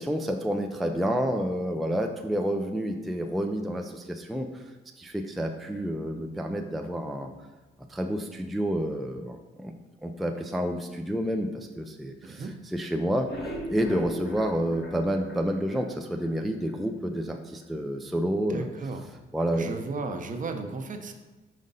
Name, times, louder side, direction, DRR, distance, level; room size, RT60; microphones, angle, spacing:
voice 1, 0.0-4.6 5.0-7.3 7.9-9.7 10.0-13.3 13.7-18.7 19.3-19.7, equal, ahead, 3 dB, 0.4 m, -29 dB
voice 2, 12.2-12.6 18.5-19.0 19.5-21.1, right 3 dB, 40° right, 5 dB, 0.7 m, -35 dB
sound 1, 13.1-16.3 16.7-16.8 17.2-17.3 17.6-17.7, equal, 60° left, 1.7 m, -38 dB
5.3 x 5.1 x 4.0 m, 1.2 s
cardioid pair, 90°, 20 cm